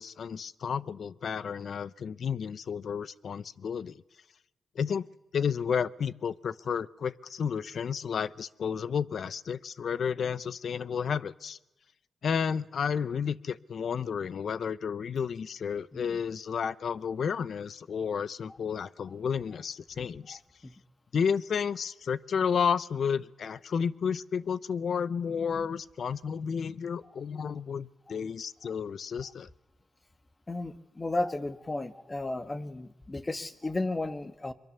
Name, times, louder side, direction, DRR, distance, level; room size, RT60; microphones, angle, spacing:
voice 1, 0.0-4.0 4.8-5.0 5.3-11.6 12.2-20.4 21.1-29.5, left 7 dB, 75° left, 18 dB, 0.7 m, -31 dB
voice 2, 30.5-34.5, left 2 dB, 30° left, 10 dB, 1.9 m, -34 dB
23.5 x 23.0 x 6.9 m, 0.98 s
cardioid pair, 75°, 0 cm